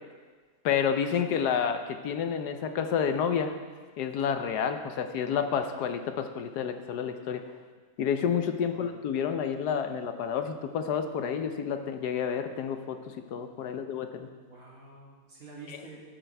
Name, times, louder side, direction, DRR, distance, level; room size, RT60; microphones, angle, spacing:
voice 1, 0.6-3.5 4.0-7.4 8.0-13.0 13.3-14.3 15.7-15.8, left 7 dB, 75° left, 7 dB, 1.2 m, -29 dB
voice 2, 14.4-16.0, right 3 dB, 55° right, -6 dB, 3.3 m, -49 dB
15.0 x 8.9 x 3.4 m, 1.5 s
omnidirectional pair, 1.8 m